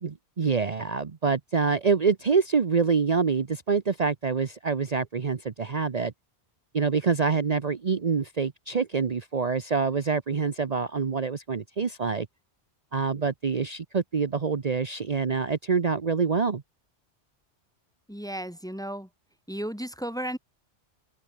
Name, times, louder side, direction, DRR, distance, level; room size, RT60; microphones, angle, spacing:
voice 1, 0.0-6.1 6.7-12.3 12.9-16.6, right 5 dB, 40° right, 0.9 m, -26 dB
voice 2, 18.1-19.1 19.5-20.4, right 1 dB, 5° left, 1.5 m, -34 dB
open air
omnidirectional pair, 1.1 m